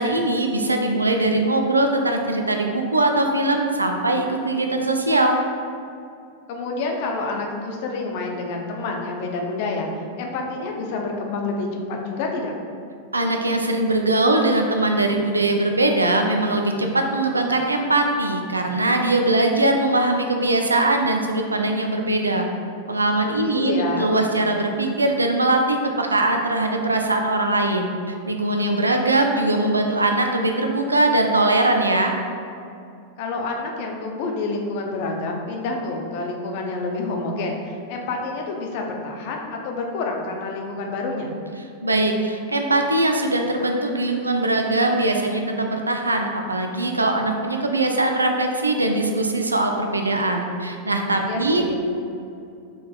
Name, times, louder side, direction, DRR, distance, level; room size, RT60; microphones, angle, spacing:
voice 1, 0.0-5.3 13.1-22.5 22.9-27.9 28.3-32.1 41.8-51.7, right 2 dB, 85° right, 3 dB, 0.4 m, -21 dB
voice 2, 6.5-12.5 23.4-24.1 33.2-41.3 51.3-51.7, left 3 dB, 50° left, 1 dB, 0.6 m, -28 dB
5.3 x 3.7 x 2.3 m, 2.5 s
figure-of-eight pair, 95°, 0 cm